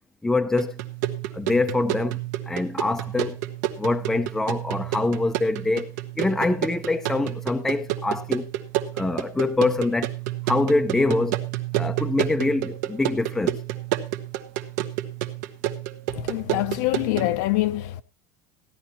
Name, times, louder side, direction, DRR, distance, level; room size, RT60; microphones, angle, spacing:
voice 1, 0.2-0.8 1.3-2.2 2.5-3.4 3.8-8.5 8.9-10.1 10.5-11.4 11.8-13.6, left 2 dB, 5° left, 0.6 m, -24 dB
sound 1, 0.6-17.3, right 13 dB, 80° right, 1.3 m, -30 dB
voice 2, 16.2-18.0, left 17 dB, 60° left, 0.7 m, -25 dB
15.5 x 11.5 x 3.0 m
cardioid pair, 180°, 10 cm